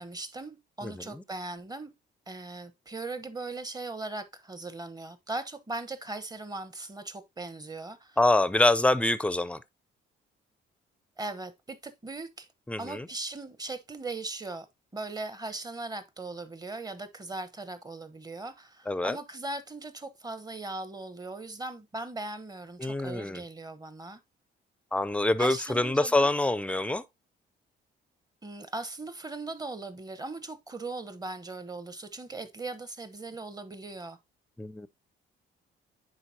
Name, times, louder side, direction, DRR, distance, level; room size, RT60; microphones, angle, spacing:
voice 1, 0.0-1.9 2.3-8.2 11.2-12.5 12.8-14.7 14.9-24.2 25.4-26.3 28.4-34.2, right 2 dB, 20° right, 1.0 m, -39 dB
voice 2, 0.8-1.2 8.2-9.6 12.7-13.1 18.9-19.2 22.8-23.4 24.9-27.0 34.6-34.9, left 2 dB, 5° left, 0.5 m, -26 dB
10.0 x 4.0 x 2.8 m
cardioid pair, 90°, 20 cm